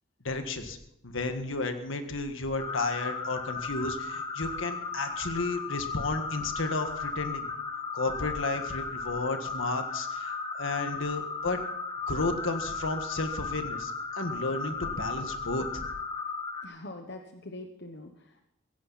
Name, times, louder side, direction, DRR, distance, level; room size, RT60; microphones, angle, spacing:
voice 1, 0.2-0.8 1.0-7.5 7.9-11.6 12.1-15.9, left 3 dB, 75° left, 7 dB, 1.6 m, -32 dB
sound 1, 2.6-16.7, left 4 dB, 25° left, 1.3 m, -35 dB
voice 2, 16.6-18.4, left 2 dB, 55° left, 4 dB, 1.1 m, -43 dB
16.5 x 16.0 x 4.1 m, 0.78 s
head